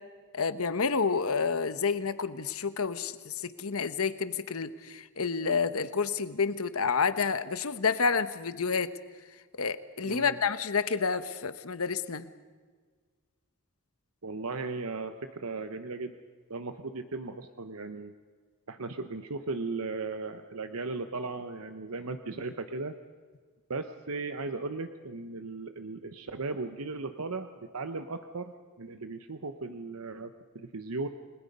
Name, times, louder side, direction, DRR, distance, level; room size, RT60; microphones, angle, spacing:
voice 1, 0.3-8.9 9.6-12.3, left 5 dB, 70° left, 13 dB, 1.0 m, -29 dB
voice 2, 10.1-10.4 14.2-16.2 16.5-18.1 18.7-22.9 23.7-28.5 28.8-31.1, right 3 dB, 75° right, 8 dB, 0.9 m, -37 dB
29.0 x 21.0 x 5.4 m, 1.5 s
head